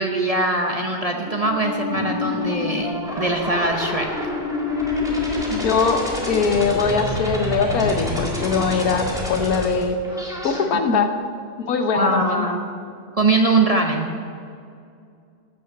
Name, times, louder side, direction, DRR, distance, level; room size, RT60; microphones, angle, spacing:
voice 1, 0.0-4.1 10.9-11.0 11.9-12.7 13.2-14.1, right 2 dB, 35° right, 2 dB, 0.7 m, -22 dB
sound 1, 1.3-10.6, left 2 dB, ahead, 2.0 m, -27 dB
voice 2, 5.5-6.0 6.3-10.0 10.4-11.1 11.6-12.5, left 5 dB, 85° left, 6 dB, 1.4 m, -21 dB
12.5 x 6.3 x 7.7 m, 2.4 s
omnidirectional pair, 1.5 m